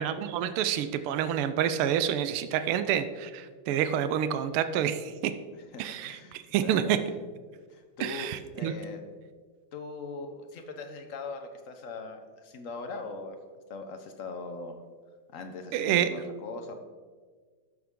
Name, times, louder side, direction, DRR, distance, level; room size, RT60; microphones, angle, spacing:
voice 1, 0.0-5.3 5.8-7.0 8.0-8.7 15.7-16.1, right 10 dB, 85° right, 11 dB, 1.5 m, -28 dB
voice 2, 5.7-6.9 7.5-9.0 9.7-13.4 13.7-14.8 15.3-16.7, left 3 dB, 55° left, 6 dB, 0.9 m, -40 dB
12.5 x 7.0 x 3.7 m, 1.5 s
omnidirectional pair, 2.3 m